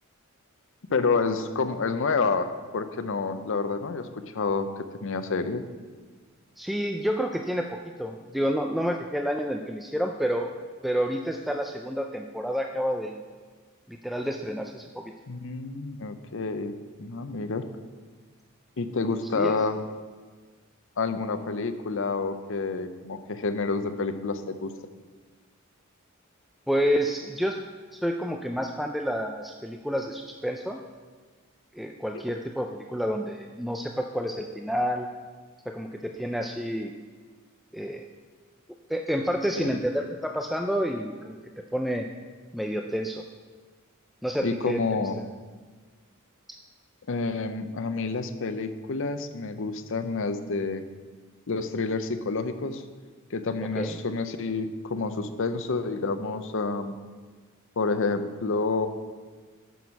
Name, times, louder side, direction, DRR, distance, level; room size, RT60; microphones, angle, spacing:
voice 1, 0.9-4.1 4.3-5.6 15.3-17.7 18.8-19.8 21.0-24.7 39.6-39.8 44.4-45.2 47.1-50.8 51.5-52.8 53.3-57.0 57.8-58.9, left 4 dB, 65° left, 9 dB, 0.6 m, -29 dB
voice 2, 6.6-7.7 8.0-10.5 10.8-13.2 13.9-15.1 19.3-19.6 26.7-27.6 27.9-30.8 31.7-35.1 35.7-36.9 37.7-38.1 38.9-41.4 41.7-42.1 42.5-43.2 44.2-44.8 53.8-54.0, equal, ahead, 3 dB, 0.4 m, -29 dB
9.1 x 6.3 x 5.8 m, 1.5 s
head